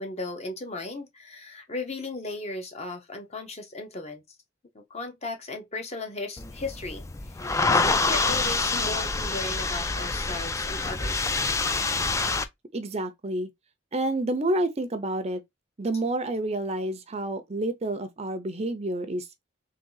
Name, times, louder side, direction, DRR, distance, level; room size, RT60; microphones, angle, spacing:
voice 1, 0.0-4.2 4.7-7.0 7.4-11.3, left 2 dB, 30° left, 0.9 m, -36 dB
sound 1, 6.4-12.4, left 3 dB, 15° left, 0.3 m, -26 dB
voice 2, 12.7-13.5 13.9-15.4 15.8-19.3, right 1 dB, 30° right, 0.6 m, -29 dB
3.7 x 3.4 x 3.9 m
head